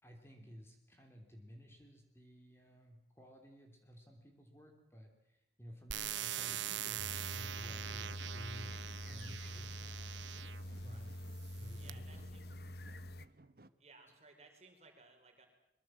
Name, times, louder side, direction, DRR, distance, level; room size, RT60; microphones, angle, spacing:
voice 1, 0.0-10.0 10.8-11.1 11.5-12.2, equal, 15° left, 3 dB, 3.3 m, -54 dB
sound 1, 5.9-10.6 11.3-11.9, right 11 dB, 85° right, 1.0 m, -43 dB
sound 2, 6.3-13.7, right 2 dB, 55° right, 1.1 m, -61 dB
sound 3, 7.0-13.3, equal, 60° left, 1.0 m, -46 dB
voice 2, 10.7-11.2 11.7-12.5 13.8-15.5, right 3 dB, 35° right, 4 dB, 4.7 m, -61 dB
24.0 x 23.0 x 7.7 m, 0.82 s
head